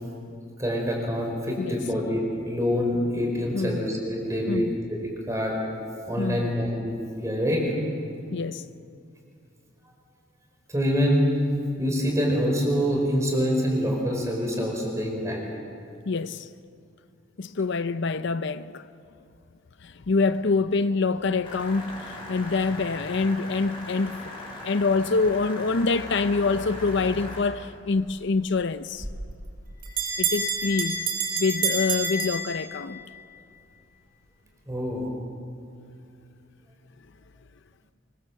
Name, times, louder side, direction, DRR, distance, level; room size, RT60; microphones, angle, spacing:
voice 1, 0.6-4.7 5.3-5.5 6.1-7.6 10.7-11.2 11.8-15.5 34.7-35.1, equal, 15° right, 5.0 m, -25 dB
voice 2, 3.5-3.9 4.5-4.8 6.2-6.5 8.3-8.7 16.1-16.5 17.4-18.9 19.8-29.1 30.2-31.0 31.4-33.0, left 4 dB, 60° left, 0.6 m, -26 dB
sound 1, 21.4-27.4, left 1 dB, 25° left, 6.8 m, -40 dB
Bell, 29.0-33.1, right 4 dB, 45° right, 6.1 m, -28 dB
25.0 x 23.5 x 7.7 m
head